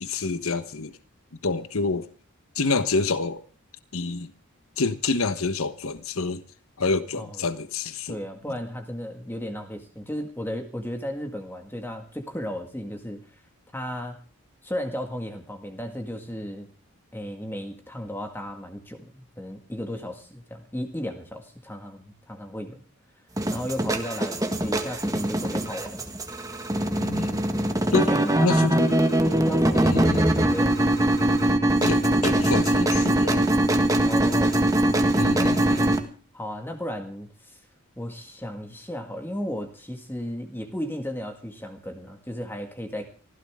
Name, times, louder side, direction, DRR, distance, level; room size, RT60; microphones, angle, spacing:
voice 1, 0.0-0.9 1.4-2.1 2.6-3.4 3.9-4.3 4.8-6.4 6.8-8.2 27.0-27.3 27.9-28.1 28.4-28.9 29.8-30.2 31.8-33.5 35.2-35.8, left 3 dB, 70° left, 1.2 m, -27 dB
voice 2, 8.1-13.2 13.7-14.2 14.6-16.7 17.1-22.8 23.5-26.1 27.5-28.9 29.3-30.8 34.0-34.6 35.3-35.9 36.3-37.6 38.0-43.1, equal, 10° left, 1.9 m, -34 dB
sound 1, 23.4-36.0, right 1 dB, 15° right, 1.7 m, -22 dB
24.5 x 16.0 x 3.7 m
head